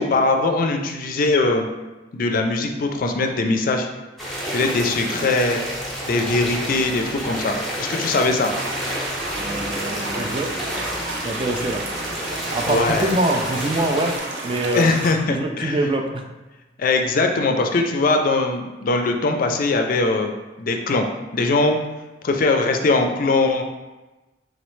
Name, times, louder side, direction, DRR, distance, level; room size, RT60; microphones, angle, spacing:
voice 1, 0.0-1.7 2.1-3.9 4.5-5.6 6.0-8.5 12.7-13.1 14.7-15.8 16.8-20.3 20.6-21.1 21.3-21.8 22.2-23.6, left 3 dB, 50° left, 4 dB, 0.4 m, -21 dB
sound 1, 4.2-14.2, equal, ahead, 0.7 m, -30 dB
sound 2, 8.5-15.1, right 2 dB, 70° right, 0.6 m, -31 dB
voice 2, 9.3-10.5 11.2-11.9 12.5-14.2 14.4-14.9 15.3-16.2, right 2 dB, 30° right, 3 dB, 0.3 m, -24 dB
3.9 x 3.1 x 3.1 m, 1.1 s
head